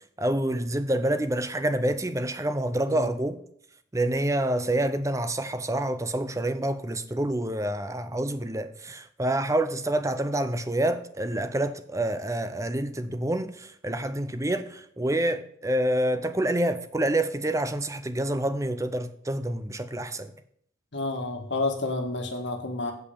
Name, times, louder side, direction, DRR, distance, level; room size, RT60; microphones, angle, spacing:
voice 1, 0.2-3.4 3.9-20.3, right 1 dB, 15° right, 0.6 m, -27 dB
voice 2, 20.9-22.9, left 2 dB, 65° left, 1.5 m, -30 dB
8.5 x 5.4 x 7.0 m
head